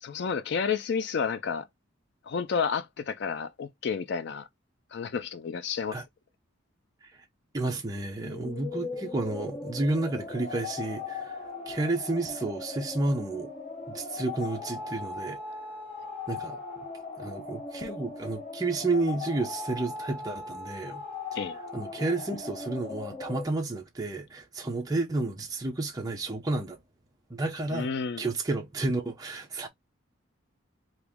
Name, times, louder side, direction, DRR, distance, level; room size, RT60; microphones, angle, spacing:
voice 1, 0.0-1.7 2.3-4.5 4.9-6.0 21.3-21.6 27.7-28.2, left 6 dB, 55° left, 0.4 m, -31 dB
voice 2, 7.5-11.4 11.7-13.5 13.9-15.4 16.3-16.6 17.2-21.0 21.7-26.8 27.3-27.9 28.2-29.7, right 2 dB, 20° right, 0.6 m, -31 dB
sound 1, 8.2-23.5, left 3 dB, 25° left, 1.2 m, -39 dB
2.9 x 2.5 x 3.5 m
head